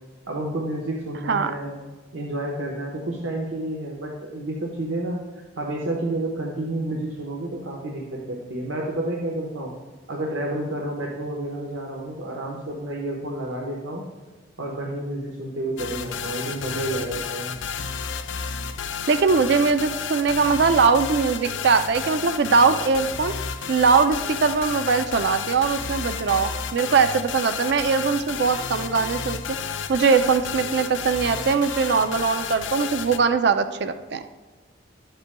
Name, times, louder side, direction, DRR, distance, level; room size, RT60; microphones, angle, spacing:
voice 1, 0.3-1.8 2.1-5.2 5.6-8.0 8.3-9.7 10.1-14.0 14.6-17.6, right 1 dB, 80° right, -2 dB, 1.1 m, -30 dB
sound 1, 15.8-33.2, left 6 dB, 65° left, 0.5 m, -31 dB
voice 2, 19.1-23.3 23.7-29.6 29.9-34.2, right 5 dB, 55° right, 10 dB, 0.4 m, -21 dB
12.0 x 8.0 x 2.2 m, 1.3 s
head